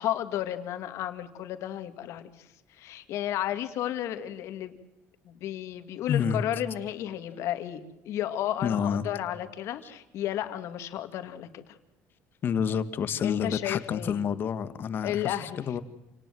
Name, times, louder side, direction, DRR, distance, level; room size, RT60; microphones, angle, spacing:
voice 1, 0.0-4.7 5.2-11.8 13.2-14.2 15.0-15.6, left 12 dB, 65° left, 8 dB, 2.5 m, -33 dB
voice 2, 6.1-6.4 8.6-9.0 9.8-9.9 12.4-15.8, left 7 dB, 40° left, 12 dB, 1.6 m, -28 dB
28.5 x 19.0 x 7.8 m, 0.94 s
cardioid pair, 145°, 5 cm